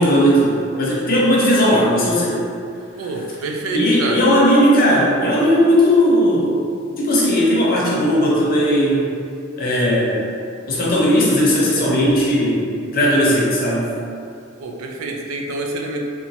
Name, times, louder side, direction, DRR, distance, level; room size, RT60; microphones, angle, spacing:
voice 1, 0.0-2.4 3.7-6.6 7.0-9.1 9.6-10.3 10.7-13.9, equal, 45° left, -5 dB, 0.6 m, -16 dB
voice 2, 3.0-4.3 14.6-16.0, right 2 dB, 80° right, 1 dB, 0.4 m, -27 dB
3.0 x 2.1 x 2.7 m, 2.4 s
head